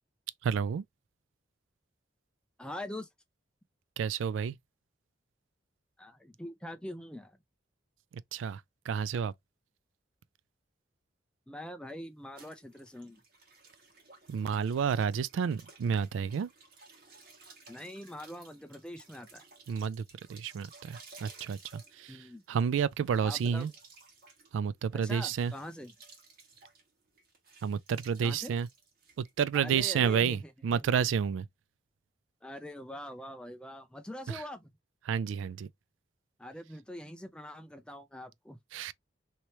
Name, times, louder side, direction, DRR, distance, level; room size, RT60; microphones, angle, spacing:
voice 1, 0.4-0.8 4.0-4.6 8.3-9.3 14.3-16.5 19.7-20.0 20.3-22.2 22.5-23.7 24.5-25.5 27.6-28.7 29.2-31.5 34.3-34.4 35.1-35.7 38.7-38.9, right 7 dB, 80° right, 0.3 m, -30 dB
voice 2, 2.6-3.1 6.0-7.4 11.5-13.2 17.7-19.4 22.1-22.4 23.2-23.7 24.9-25.9 28.2-28.5 29.5-31.1 32.4-34.7 36.4-38.6, left 1 dB, 5° left, 0.5 m, -43 dB
sound 1, 12.3-29.8, right 4 dB, 50° right, 1.3 m, -57 dB
3.0 x 2.8 x 3.1 m
head